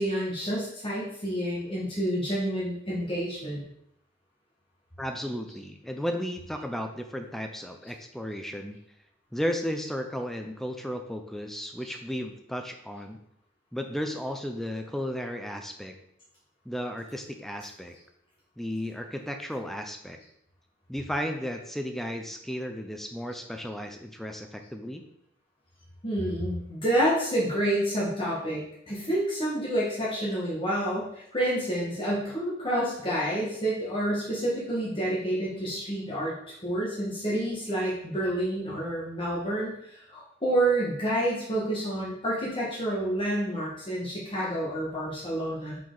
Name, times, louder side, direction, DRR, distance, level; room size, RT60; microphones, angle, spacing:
voice 1, 0.0-3.6 26.0-45.8, right 1 dB, 25° left, -7 dB, 1.7 m, -29 dB
voice 2, 5.0-8.8 9.3-13.2 13.7-15.9 16.7-18.0 18.6-20.2 20.9-25.0, equal, ahead, 5 dB, 0.5 m, -34 dB
7.4 x 4.6 x 4.0 m, 0.72 s
head